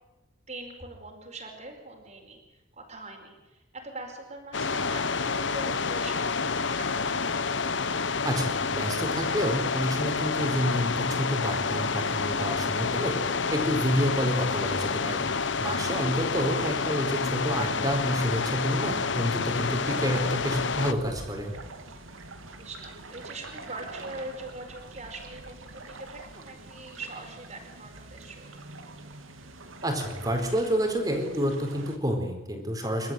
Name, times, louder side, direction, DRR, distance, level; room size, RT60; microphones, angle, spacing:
voice 1, 0.5-7.1 21.8-22.1 22.6-28.7, right 2 dB, 35° right, 2 dB, 4.9 m, -42 dB
sound 1, 4.5-20.9, left 4 dB, 65° left, 1.1 m, -29 dB
voice 2, 8.2-13.2 13.5-15.2 15.6-21.5 29.8-33.1, equal, 20° right, 3 dB, 4.5 m, -29 dB
sound 2, 19.5-32.0, right 2 dB, 85° right, 2.6 m, -45 dB
28.0 x 13.5 x 9.1 m, 1.0 s
head